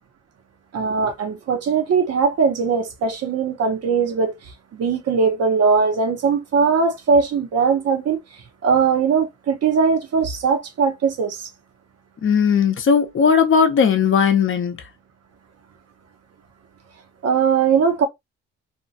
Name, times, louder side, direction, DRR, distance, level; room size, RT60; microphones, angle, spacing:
voice 1, 0.7-4.3 4.7-8.2 8.6-11.5 17.2-18.1, right 5 dB, 55° right, 0.9 m, -20 dB
voice 2, 12.2-14.8, left 6 dB, 45° left, 0.7 m, -17 dB
2.8 x 2.3 x 2.6 m
cardioid pair, 90°, 30 cm